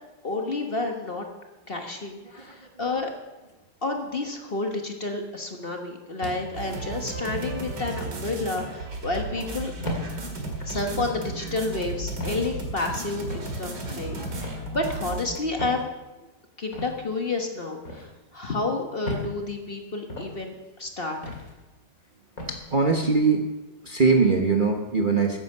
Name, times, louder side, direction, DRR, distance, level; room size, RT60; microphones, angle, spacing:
voice 1, 0.2-1.3 1.7-3.1 3.8-9.7 10.6-15.9 16.6-21.2, left 2 dB, 35° left, 3 dB, 1.3 m, -30 dB
sound 1, 6.2-6.7 7.3-7.6 8.6-8.8 9.8-10.1 11.0-11.2 12.2-12.5 13.3-13.6 14.4-14.6 15.6-15.8 16.7-16.9 17.9-18.1 19.1-19.3 20.1-20.3 21.2-21.5 22.4-22.6, left 1 dB, 55° left, 2.9 m, -34 dB
sound 2, 6.5-15.4, right 2 dB, 90° right, 2.6 m, -34 dB
voice 2, 22.5-23.4 23.8-25.4, right 4 dB, 35° right, 2 dB, 1.0 m, -22 dB
14.0 x 10.0 x 5.5 m, 1.1 s
omnidirectional pair, 1.8 m